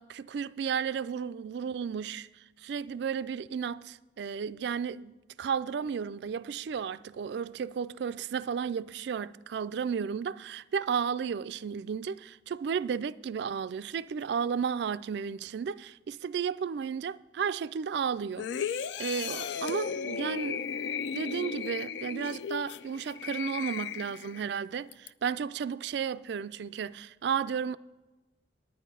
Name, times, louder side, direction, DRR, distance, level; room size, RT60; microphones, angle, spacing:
voice 1, 0.0-2.3 2.6-20.7 21.1-24.9 25.2-27.8, right 6 dB, 60° right, 0.3 m, -33 dB
sound 1, 18.4-24.5 24.9-25.1, left 6 dB, 65° left, 0.3 m, -35 dB
10.0 x 9.7 x 5.5 m
head